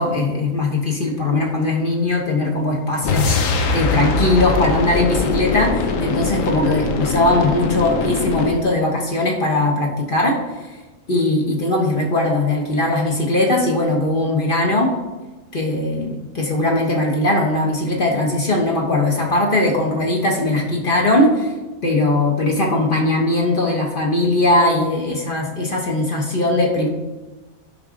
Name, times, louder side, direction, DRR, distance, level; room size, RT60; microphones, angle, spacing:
voice 1, 0.0-10.8 11.1-14.9 15.5-21.5 21.8-26.9, left 2 dB, 40° left, 0 dB, 1.3 m, -19 dB
sound 1, 3.0-8.6, left 3 dB, 70° left, 1.2 m, -22 dB
11.5 x 5.4 x 3.8 m, 1.2 s
omnidirectional pair, 1.5 m